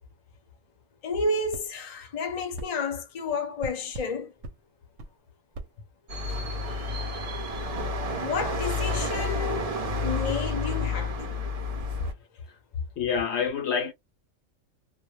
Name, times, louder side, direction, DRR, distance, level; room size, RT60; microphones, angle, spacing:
voice 1, 1.0-4.3 8.1-9.8 10.0-11.4, left 3 dB, 40° left, 0.6 m, -31 dB
sound 1, 1.5-1.7 2.6-2.7 3.6-4.1 4.4-4.6 5.0-5.1 5.5-5.7, right 2 dB, 70° right, 0.8 m, -39 dB
sound 2, 6.1-12.1, left 2 dB, 50° right, 0.4 m, -30 dB
voice 2, 13.0-13.9, left 6 dB, 65° left, 0.8 m, -27 dB
2.2 x 2.1 x 2.9 m
omnidirectional pair, 1.3 m